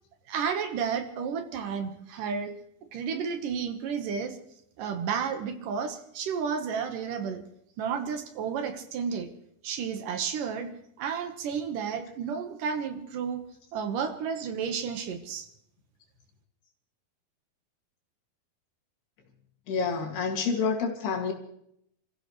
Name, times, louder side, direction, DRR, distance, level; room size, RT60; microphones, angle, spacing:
voice 1, 0.3-2.5 2.9-4.4 4.8-7.4 7.8-9.3 9.6-10.7 11.0-13.4 13.7-15.5, right 6 dB, 65° right, 6 dB, 2.7 m, -32 dB
voice 2, 19.7-21.3, left 5 dB, 85° left, 1 dB, 4.4 m, -28 dB
29.0 x 15.0 x 3.2 m, 0.73 s
omnidirectional pair, 4.5 m